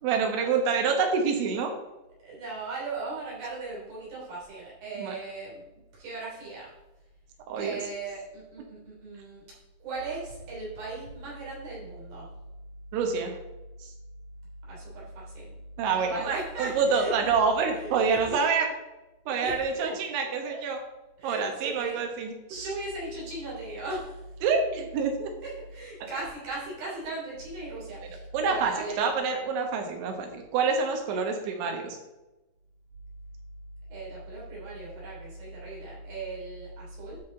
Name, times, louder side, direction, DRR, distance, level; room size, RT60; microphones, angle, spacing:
voice 1, 0.0-1.7 5.0-5.2 7.5-7.8 12.9-13.4 13.8-13.9 15.8-18.7 19.3-20.8 21.2-22.7 24.4-25.3 28.3-28.7 29.0-32.0, right 5 dB, 80° right, 3 dB, 3.6 m, -27 dB
voice 2, 1.1-1.5 2.2-5.6 5.9-6.7 7.6-9.4 9.8-12.3 14.7-15.5 15.9-17.3 17.7-18.4 19.3-19.9 20.5-20.6 21.2-22.0 22.5-24.2 24.9-25.0 25.4-29.1 33.9-37.2, right 2 dB, 55° right, -6 dB, 5.0 m, -38 dB
12.5 x 5.7 x 3.9 m, 1.0 s
omnidirectional pair, 5.2 m